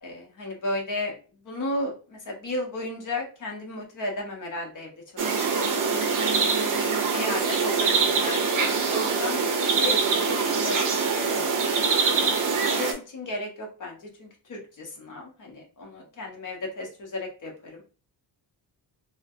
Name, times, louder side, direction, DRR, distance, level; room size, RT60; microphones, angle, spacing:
voice 1, 0.0-1.2 1.4-4.9 5.2-5.5 5.7-5.8 7.1-17.8, left 1 dB, 45° left, 0 dB, 1.0 m, -34 dB
sound 1, 5.2-12.9, right 5 dB, 50° right, 0.6 m, -24 dB
3.2 x 2.2 x 2.5 m, 0.35 s
cardioid pair, 135°, 41 cm